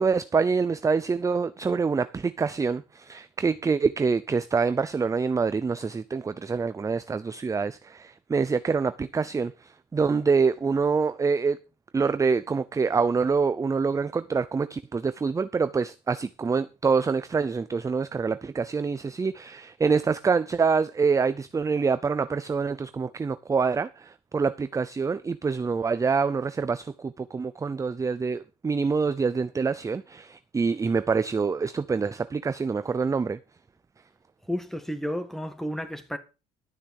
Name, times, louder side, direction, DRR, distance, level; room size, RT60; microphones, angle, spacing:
voice 1, 0.0-11.6 11.9-33.4, right 5 dB, 20° right, 0.5 m, -26 dB
voice 2, 34.4-36.2, equal, ahead, 1.9 m, -32 dB
12.5 x 6.5 x 6.4 m
cardioid pair, 110°, 17 cm